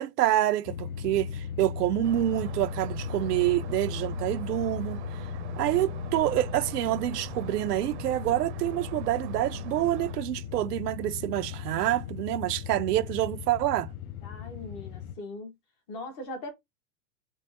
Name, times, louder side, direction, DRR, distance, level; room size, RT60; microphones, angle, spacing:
voice 1, 0.0-5.0 5.6-13.9, right 14 dB, 85° right, 0.7 m, -27 dB
sound 1, 0.7-15.1, left 7 dB, 60° left, 0.6 m, -37 dB
sound 2, 2.0-10.1, right 7 dB, 45° right, 0.7 m, -43 dB
voice 2, 14.2-15.5 15.9-16.5, left 2 dB, 15° left, 0.4 m, -39 dB
3.2 x 2.6 x 4.4 m
supercardioid pair, 165°, 47 cm